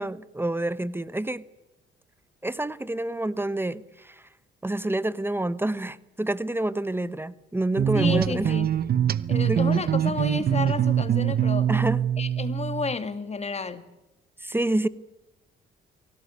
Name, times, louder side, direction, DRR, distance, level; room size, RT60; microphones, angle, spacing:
voice 1, 0.0-1.4 2.4-4.1 4.6-8.5 9.5-9.6 11.7-12.0 14.4-14.9, right 1 dB, 10° right, 1.1 m, -28 dB
sound 1, 7.8-13.0, right 9 dB, 50° right, 0.9 m, -24 dB
voice 2, 7.9-8.8 9.3-11.7 12.2-13.8, left 4 dB, 35° left, 2.4 m, -31 dB
24.0 x 18.0 x 9.6 m
cardioid pair, 90°, 20 cm